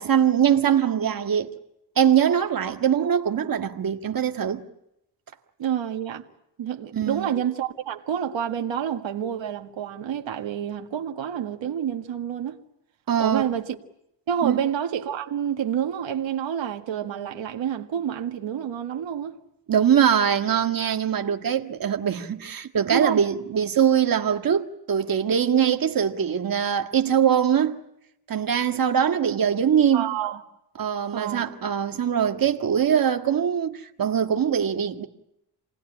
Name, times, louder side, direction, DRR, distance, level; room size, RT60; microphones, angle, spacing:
voice 1, 0.0-1.5 2.0-4.6 6.9-7.3 13.1-13.4 14.4-14.6 19.7-27.8 28.3-30.1 30.8-35.1, right 8 dB, 50° right, 1.7 m, -22 dB
voice 2, 5.6-6.3 6.6-12.6 13.2-13.8 14.3-19.4 22.9-23.2 29.9-30.4 31.1-31.5, right 9 dB, 80° right, 1.9 m, -28 dB
28.0 x 19.5 x 10.0 m
wide cardioid pair, 155°, 45 cm